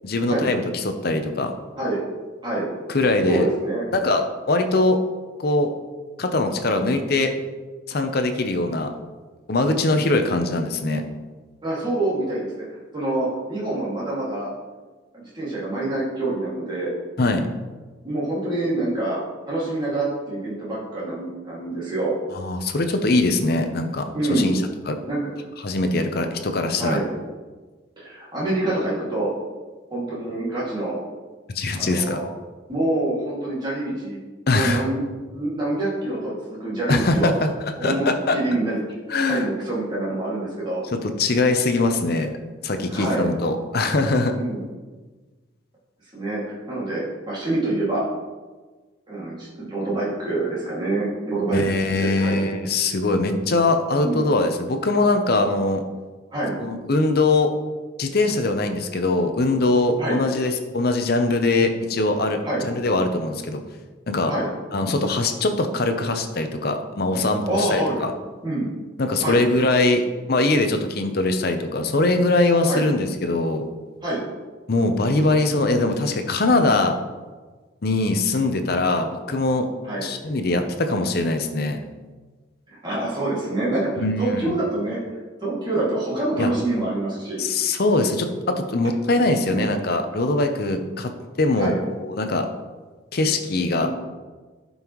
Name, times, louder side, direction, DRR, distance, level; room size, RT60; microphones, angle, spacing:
voice 1, 0.0-1.5 2.9-3.5 3.9-5.0 5.4-5.7 6.2-7.3 7.9-8.9 9.5-11.1 17.2-17.5 22.3-24.6 24.9-25.0 25.6-27.0 31.5-32.2 34.5-34.8 36.9-38.4 39.1-39.5 41.2-42.4 42.6-44.4 51.5-55.8 56.6-57.5 58.0-63.6 64.1-64.3 64.7-68.1 69.0-70.0 70.3-73.6 74.7-77.0 77.8-79.7 80.0-81.8 84.0-84.5 86.4-86.5 87.4-91.1 91.4-91.7 92.0-92.5 93.1-93.9, left 2 dB, 55° left, 6 dB, 0.7 m, -22 dB
voice 2, 3.3-3.8 11.6-12.6 12.9-14.5 15.1-16.9 18.0-19.2 19.5-22.1 24.1-24.5 25.1-25.3 26.8-27.1 28.0-29.3 29.9-31.0 31.8-32.2 32.7-34.2 34.5-35.0 35.3-37.3 37.8-40.8 42.9-43.3 44.3-44.7 46.1-48.0 49.1-51.6 52.0-52.4 54.0-54.2 56.3-56.6 60.0-60.2 62.4-62.6 64.3-64.5 67.5-68.0 68.4-68.7 69.2-69.4 72.6-72.9 74.0-74.2 75.5-75.8 79.8-80.1 82.7-85.0 85.4-87.4 89.0-89.1 89.5-89.7 91.6-91.8 93.8-93.9, right 2 dB, 25° right, -7 dB, 2.2 m, -26 dB
11.0 x 5.4 x 3.1 m, 1.3 s
head